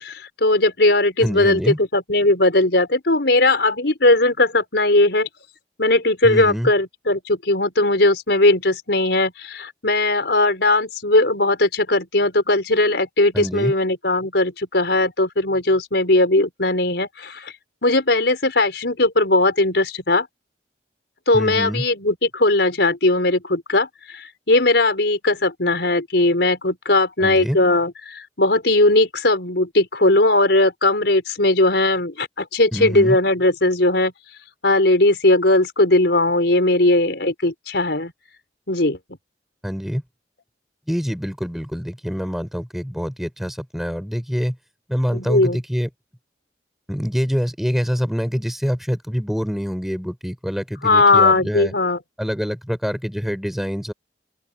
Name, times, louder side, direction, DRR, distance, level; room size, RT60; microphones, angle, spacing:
voice 1, 0.0-5.3 5.8-17.5 17.8-20.3 21.3-34.1 34.6-38.1 38.7-39.0 45.1-45.6 50.8-52.0, left 2 dB, 75° left, 4.2 m, -18 dB
voice 2, 1.2-1.8 6.2-6.7 13.3-13.7 21.3-21.8 27.2-27.6 32.7-33.2 39.6-40.0 40.9-44.6 44.9-45.9 46.9-51.7 52.2-53.9, equal, ahead, 3.2 m, -25 dB
open air
head